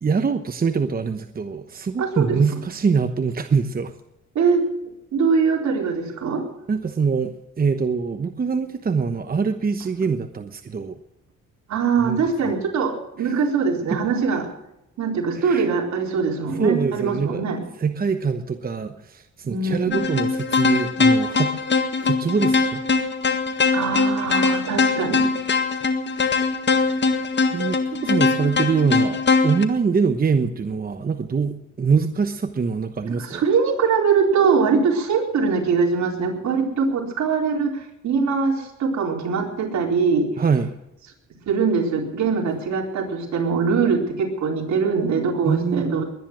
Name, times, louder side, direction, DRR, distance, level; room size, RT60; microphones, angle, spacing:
voice 1, 0.0-3.9 6.7-11.0 12.0-12.2 12.4-12.5 13.2-13.3 13.9-14.0 15.4-15.7 16.6-17.4 17.8-21.5 22.0-22.8 26.7-27.0 27.5-33.4 40.4-40.7 45.4-46.0, right 5 dB, 30° right, 8 dB, 1.0 m, -24 dB
voice 2, 2.0-2.3 4.3-4.6 5.1-6.4 11.7-14.4 15.0-17.6 19.4-20.0 23.7-25.3 33.3-40.3 41.5-46.0, right 5 dB, 65° right, 0 dB, 4.4 m, -22 dB
jumpy arp, 19.9-29.6, left 4 dB, 35° left, 1.7 m, -21 dB
21.5 x 10.0 x 6.2 m, 0.87 s
cardioid pair, 90°, 30 cm